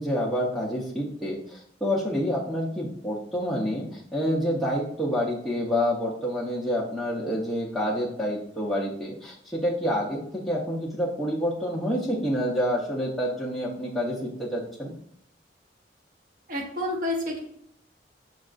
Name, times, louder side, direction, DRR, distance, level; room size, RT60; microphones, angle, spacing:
voice 1, 0.0-14.9, equal, ahead, -6 dB, 0.5 m, -28 dB
voice 2, 16.5-17.4, left 1 dB, 50° right, 0 dB, 0.9 m, -29 dB
6.1 x 2.3 x 2.4 m, 0.69 s
head